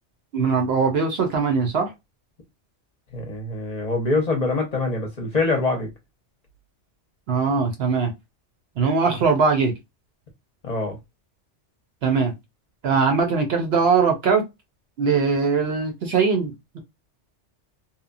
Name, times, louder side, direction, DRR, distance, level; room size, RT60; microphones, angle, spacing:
voice 1, 0.3-1.9 7.3-8.1 8.8-9.7 12.0-12.3 12.8-14.5 15.0-16.8, right 5 dB, 65° right, 0.8 m, -21 dB
voice 2, 3.1-5.9 10.6-11.0, left 3 dB, 40° left, 0.7 m, -24 dB
2.8 x 2.1 x 2.5 m
omnidirectional pair, 1.2 m